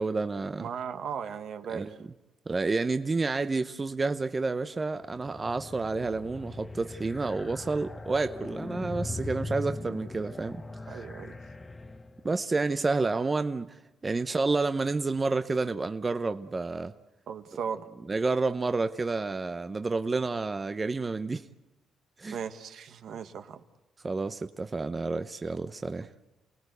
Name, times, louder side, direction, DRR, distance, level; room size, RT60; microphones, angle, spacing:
voice 1, 0.0-0.7 1.7-2.0 2.5-10.6 10.9-11.0 12.2-13.8 14.0-16.9 18.1-21.5 22.2-22.4 24.0-26.1, right 3 dB, 25° right, 0.8 m, -29 dB
voice 2, 0.6-1.9 10.9-11.4 17.3-17.9 22.3-23.6, right 7 dB, 70° right, 1.4 m, -37 dB
sound 1, 5.0-12.4, left 2 dB, 20° left, 1.1 m, -40 dB
28.5 x 18.5 x 8.2 m
cardioid pair, 90°, 0 cm